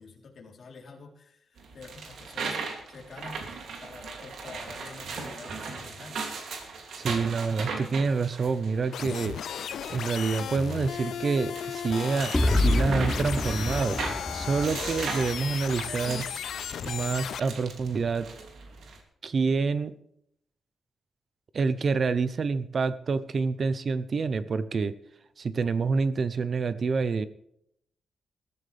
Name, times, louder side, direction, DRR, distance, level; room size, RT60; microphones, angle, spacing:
voice 1, 0.0-3.4 3.8-6.3, left 3 dB, 45° left, -1 dB, 3.8 m, -47 dB
sound 1, 1.6-19.0, right 4 dB, 80° right, 2.9 m, -39 dB
voice 2, 7.0-9.4 9.9-14.0 14.3-16.3 16.8-18.3 19.2-19.9 21.5-24.9 25.4-27.3, right 4 dB, 45° right, 14 dB, 0.8 m, -27 dB
sound 2, 8.9-17.4, left 9 dB, 80° left, 0.4 m, -35 dB
sound 3, 12.3-16.2, left 1 dB, 10° left, 0.9 m, -28 dB
21.0 x 13.5 x 3.5 m, 0.74 s
wide cardioid pair, 145°, 0 cm